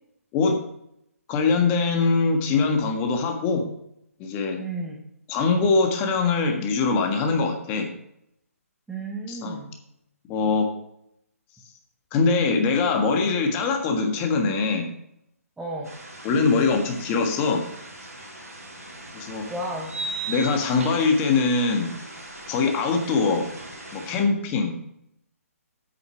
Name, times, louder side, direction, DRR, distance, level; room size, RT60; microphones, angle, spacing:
voice 1, 1.3-3.6 4.2-4.6 5.3-7.9 9.3-9.6 10.3-10.7 12.1-14.9 16.2-17.6 19.1-19.4 20.3-21.9 22.5-23.4 23.9-24.8, left 4 dB, 20° left, 4 dB, 1.5 m, -22 dB
voice 2, 4.6-5.0 8.9-9.7 15.6-15.9 19.5-19.9, right 2 dB, 5° right, -3 dB, 1.2 m, -32 dB
sound 1, 15.8-24.2, right 1 dB, 90° right, 3.9 m, -42 dB
sound 2, 18.2-18.3 19.9-21.3, right 4 dB, 55° right, 1.2 m, -33 dB
8.5 x 6.5 x 5.7 m, 0.77 s
figure-of-eight pair, 145°, 8 cm